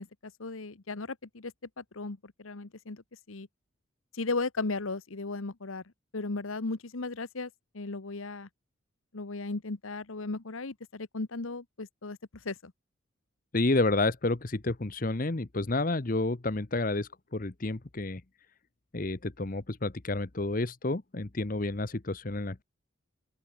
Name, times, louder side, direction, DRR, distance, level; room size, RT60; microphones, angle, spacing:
voice 1, 0.0-3.0 3.3-3.5 4.1-5.8 6.1-8.5 9.1-12.2 12.4-12.7, left 3 dB, 80° left, 1.2 m, -36 dB
voice 2, 13.5-18.2 18.9-22.6, left 2 dB, 40° left, 0.9 m, -30 dB
open air
head